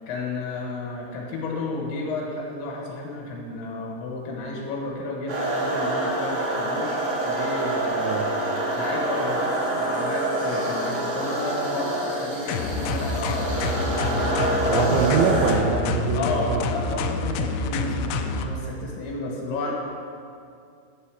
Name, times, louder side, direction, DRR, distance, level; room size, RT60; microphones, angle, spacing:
voice 1, 0.0-8.2 8.5-15.0 16.1-19.7, left 2 dB, 70° left, -1 dB, 3.3 m, -32 dB
sound 1, 5.3-15.5, right 2 dB, 60° right, 1.9 m, -26 dB
sound 2, 12.5-18.5, left 3 dB, 85° left, 2.6 m, -27 dB
voice 2, 14.7-16.2 16.5-16.6, right 6 dB, 85° right, 4 dB, 3.2 m, -23 dB
11.5 x 4.1 x 7.0 m, 2.4 s
omnidirectional pair, 5.7 m